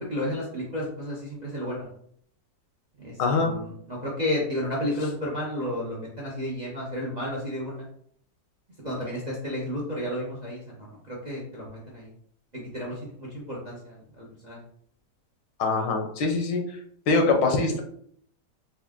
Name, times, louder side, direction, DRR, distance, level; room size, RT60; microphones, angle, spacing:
voice 1, 0.0-1.9 3.0-7.9 8.8-12.1 12.5-14.6, left 1 dB, 40° right, -4 dB, 0.6 m, -32 dB
voice 2, 3.2-3.5 15.6-16.6 17.1-17.8, left 3 dB, 80° left, 3 dB, 1.4 m, -23 dB
4.2 x 2.5 x 3.6 m, 0.65 s
omnidirectional pair, 2.0 m